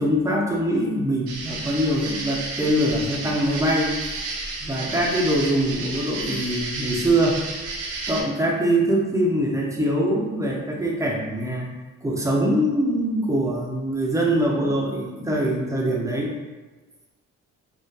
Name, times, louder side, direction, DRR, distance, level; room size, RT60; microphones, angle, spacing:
voice 1, 0.0-3.9 4.6-7.4 8.1-11.7 12.0-16.3, right 1 dB, 10° right, -2 dB, 0.5 m, -23 dB
sound 1, 1.3-8.2, right 3 dB, 75° right, 0.6 m, -32 dB
2.6 x 2.2 x 2.2 m, 1.3 s
cardioid pair, 90°, 30 cm